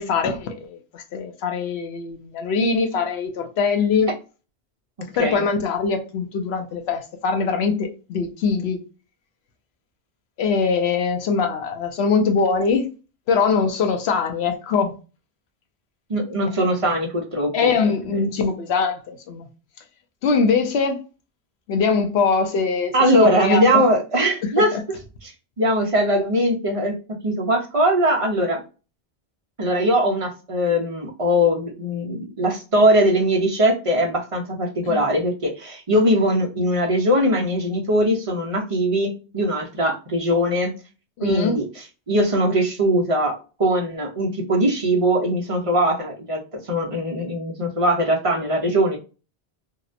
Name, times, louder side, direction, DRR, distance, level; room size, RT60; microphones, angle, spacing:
voice 1, 0.0-4.1 5.2-8.8 10.4-12.9 13.3-14.9 17.5-19.5 20.2-21.0 21.7-22.9 23.4-23.8 24.4-24.8 34.8-35.0 41.2-41.6, left 5 dB, 75° left, 0.9 m, -22 dB
voice 2, 16.1-17.7 22.9-24.8 25.2-25.3 25.6-26.9 27.2-28.6 29.6-40.7 41.2-43.3 43.6-49.0, equal, 40° right, 0.5 m, -21 dB
2.8 x 2.1 x 2.4 m
omnidirectional pair, 1.1 m